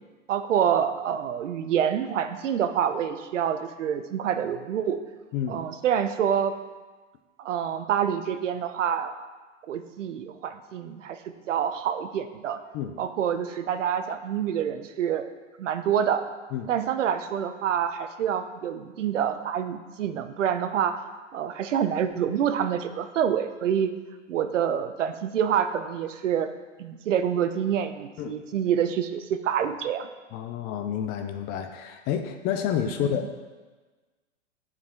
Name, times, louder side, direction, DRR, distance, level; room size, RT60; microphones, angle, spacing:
voice 1, 0.3-5.0 5.5-6.5 7.4-9.1 9.7-11.2 11.5-12.6 13.0-15.3 15.6-16.2 16.7-21.0 21.3-23.9 24.3-26.5 26.8-30.1 33.0-33.2, right 8 dB, 75° right, 9 dB, 0.7 m, -27 dB
voice 2, 5.3-5.6 12.7-13.0 16.5-16.7 28.2-28.4 30.3-33.4, left 9 dB, 25° left, 7 dB, 0.4 m, -29 dB
9.1 x 4.9 x 3.6 m, 1.3 s
hypercardioid pair, 115°, 37 cm